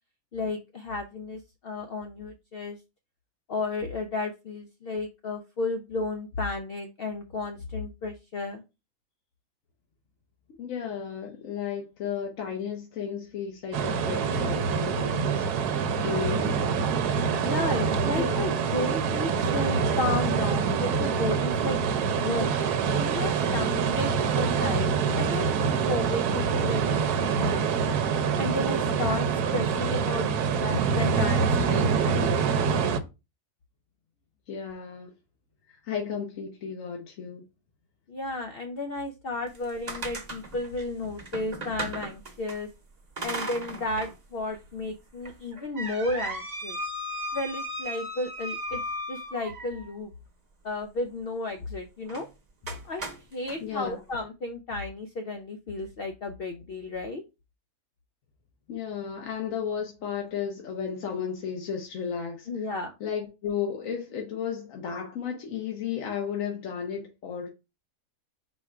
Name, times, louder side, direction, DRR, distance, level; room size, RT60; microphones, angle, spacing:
voice 1, 0.3-2.8 3.5-8.6 17.4-21.8 22.2-22.5 22.9-24.9 25.2-27.9 28.4-29.3 29.5-30.3 30.6-32.3 38.1-42.7 43.2-46.8 47.3-48.8 49.1-50.1 50.6-52.3 52.8-53.0 53.3-57.2 62.5-63.0, left 2 dB, 90° left, 0.5 m, -33 dB
voice 2, 10.6-16.7 18.1-18.5 34.5-35.1 35.7-37.4 53.6-54.0 58.7-62.7 63.0-67.5, left 7 dB, 65° left, 1.1 m, -34 dB
sound 1, 13.7-33.0, right 6 dB, 85° right, 1.1 m, -25 dB
sound 2, 39.5-42.6 43.2-44.2 44.5-44.6 45.2-49.9 52.1-52.3 52.7-53.6, right 1 dB, 30° right, 0.8 m, -36 dB
4.3 x 2.2 x 4.7 m
omnidirectional pair, 1.6 m